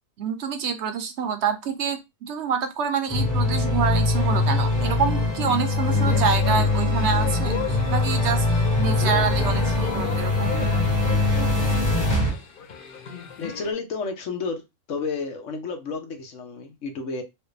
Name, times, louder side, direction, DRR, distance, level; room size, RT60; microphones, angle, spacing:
voice 1, 0.2-10.6, right 6 dB, 65° right, 0.9 m, -27 dB
sound 1, 3.1-12.3, left 2 dB, 15° left, 1.1 m, -22 dB
sound 2, 5.8-13.7, left 7 dB, 50° left, 0.8 m, -36 dB
voice 2, 13.4-14.6 14.9-17.2, left 4 dB, 65° left, 1.2 m, -31 dB
4.7 x 2.2 x 3.3 m
omnidirectional pair, 1.4 m